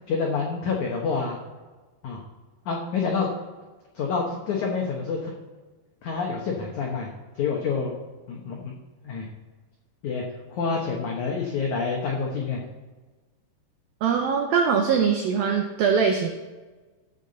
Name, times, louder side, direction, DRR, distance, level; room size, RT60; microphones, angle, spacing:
voice 1, 0.1-1.4 2.0-2.2 2.6-3.3 3.9-5.3 6.0-7.1 7.4-7.9 8.3-8.7 9.0-9.3 10.0-10.2 10.5-12.6, left 5 dB, 85° left, -1 dB, 1.6 m, -27 dB
voice 2, 14.0-16.3, right 6 dB, 90° right, 3 dB, 2.0 m, -22 dB
15.0 x 5.6 x 4.0 m, 1.2 s
omnidirectional pair, 5.2 m